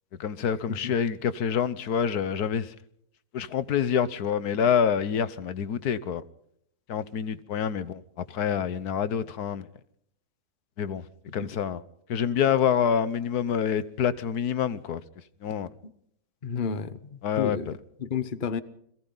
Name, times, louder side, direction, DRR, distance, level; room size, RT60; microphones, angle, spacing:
voice 1, 0.2-2.7 3.3-6.2 6.9-9.7 10.8-11.0 11.3-11.8 12.1-15.0 15.4-15.7 17.2-17.7, left 8 dB, 85° left, 1.5 m, -27 dB
voice 2, 16.4-17.0 17.4-17.7 18.0-18.6, left 6 dB, 35° left, 1.1 m, -30 dB
29.5 x 22.0 x 4.0 m
omnidirectional pair, 1.6 m